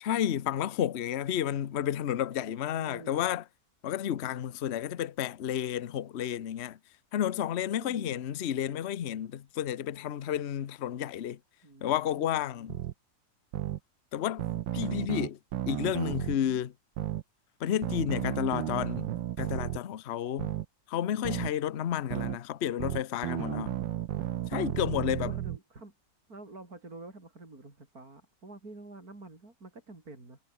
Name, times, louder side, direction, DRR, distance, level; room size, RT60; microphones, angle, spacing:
voice 1, 0.0-3.4 3.8-6.8 7.1-11.4 11.8-12.8 14.1-14.5 14.7-15.4 15.7-16.7 17.6-20.5 20.9-23.7 24.5-25.3, left 10 dB, 50° left, 0.9 m, -31 dB
voice 2, 2.4-3.2 7.8-8.2 11.6-12.7 16.4-16.6 23.5-23.9 24.9-25.9 26.3-30.4, right 2 dB, 50° right, 5.5 m, -48 dB
sound 1, 12.7-12.9 13.5-13.8 14.4-16.4 17.0-17.2 17.8-19.8 20.4-20.7 21.3-21.5 22.1-22.4 22.8-25.6, right 13 dB, 85° right, 1.5 m, -33 dB
omnidirectional pair, 2.0 m